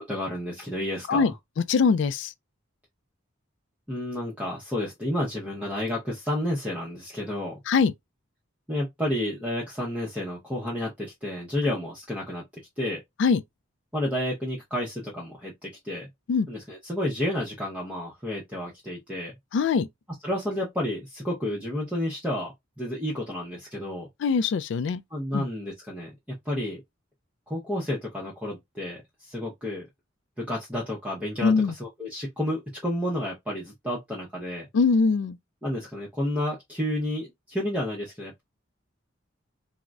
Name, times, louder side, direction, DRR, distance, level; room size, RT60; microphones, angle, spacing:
voice 1, 0.0-1.3 3.9-7.6 8.7-12.4 12.8-13.0 13.9-16.1 16.5-19.4 20.2-24.1 25.1-26.8 27.5-29.9 30.4-34.7 35.6-38.4, left 1 dB, 5° right, 0.6 m, -31 dB
voice 2, 1.7-2.3 7.7-7.9 13.2-13.4 16.3-16.5 19.5-19.9 24.2-25.0 25.3-25.4 31.4-31.7 34.7-35.4, left 5 dB, 65° left, 0.3 m, -22 dB
3.7 x 2.0 x 2.2 m
head